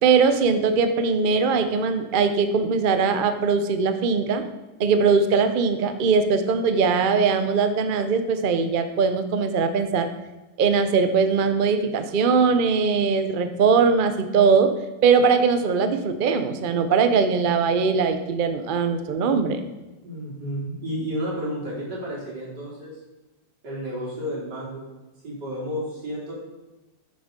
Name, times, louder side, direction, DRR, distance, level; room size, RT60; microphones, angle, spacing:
voice 1, 0.0-4.4 4.8-10.1 10.6-14.7 15.0-19.6, right 5 dB, 80° right, 8 dB, 0.4 m, -21 dB
voice 2, 20.0-22.9 23.6-24.8 25.2-26.3, equal, 60° right, -6 dB, 4.1 m, -31 dB
9.1 x 7.1 x 5.2 m, 1.1 s
omnidirectional pair, 2.0 m